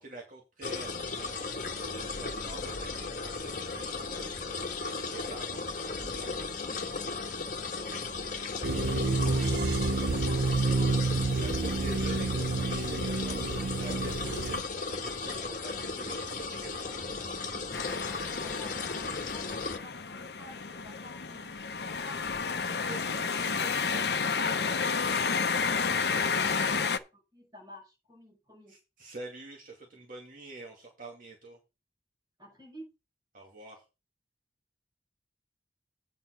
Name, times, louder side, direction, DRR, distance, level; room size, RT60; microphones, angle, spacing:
voice 1, 0.0-4.5 4.8-6.8 11.3-17.4 22.6-26.2 28.7-31.6 33.3-33.8, right 3 dB, 50° right, -1 dB, 2.4 m, -47 dB
sound 1, 0.6-19.8, left 4 dB, 50° left, 1.4 m, -36 dB
voice 2, 8.5-10.9 18.4-22.2 27.1-28.8 32.4-32.9, left 1 dB, 20° right, -1 dB, 5.8 m, -51 dB
sound 2, 8.6-14.6, right 3 dB, 80° right, 0.7 m, -29 dB
sound 3, 17.7-27.0, left 5 dB, 70° left, 0.8 m, -31 dB
9.1 x 5.6 x 6.0 m, 0.28 s
head